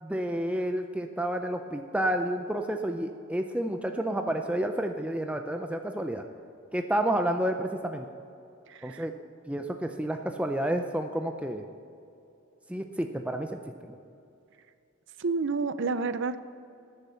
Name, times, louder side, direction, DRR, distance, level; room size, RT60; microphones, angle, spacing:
voice 1, 0.0-6.2 6.7-8.1 8.8-9.1 9.5-11.6 12.7-14.0, right 1 dB, 5° right, 5 dB, 0.5 m, -30 dB
voice 2, 8.7-9.0 15.2-16.4, right 4 dB, 60° right, 13 dB, 0.5 m, -29 dB
19.0 x 6.9 x 5.7 m, 2.6 s
head